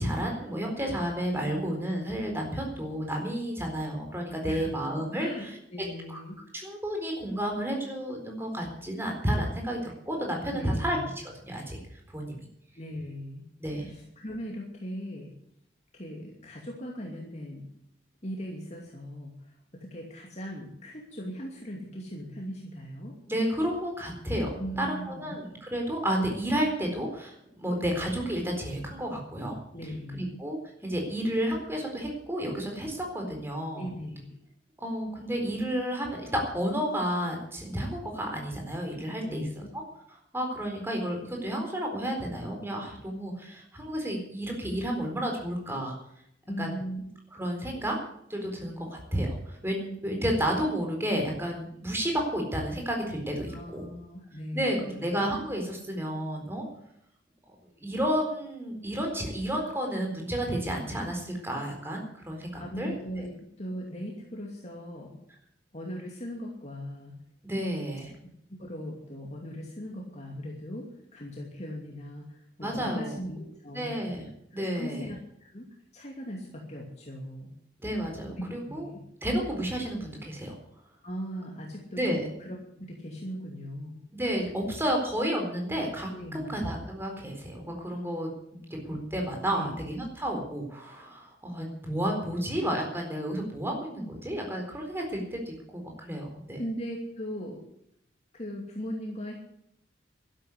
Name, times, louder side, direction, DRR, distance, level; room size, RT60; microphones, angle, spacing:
voice 1, 0.0-5.5 6.1-6.2 6.5-11.0 11.2-11.8 12.1-12.4 13.6-13.9 23.3-29.6 30.1-33.9 34.8-39.4 40.3-46.0 46.6-46.8 47.3-48.0 48.3-53.8 54.5-56.6 57.8-63.3 67.4-68.1 72.6-73.2 73.7-75.1 77.8-78.9 79.2-80.5 81.9-82.2 84.1-96.6, equal, 15° right, 1 dB, 4.2 m, -31 dB
voice 2, 4.4-6.4 10.5-11.0 12.8-13.4 13.7-15.3 15.9-17.7 18.2-19.5 19.8-23.2 24.6-25.4 29.7-30.4 33.7-34.4 39.2-39.9 46.5-47.0 53.5-55.2 62.6-65.2 65.7-67.2 68.5-74.0 74.5-75.6 75.9-77.5 78.4-79.0 81.0-84.0 86.1-86.6 89.5-89.9 96.6-97.6 98.3-99.4, equal, 35° left, -1 dB, 2.7 m, -39 dB
12.5 x 11.5 x 8.0 m, 0.74 s
head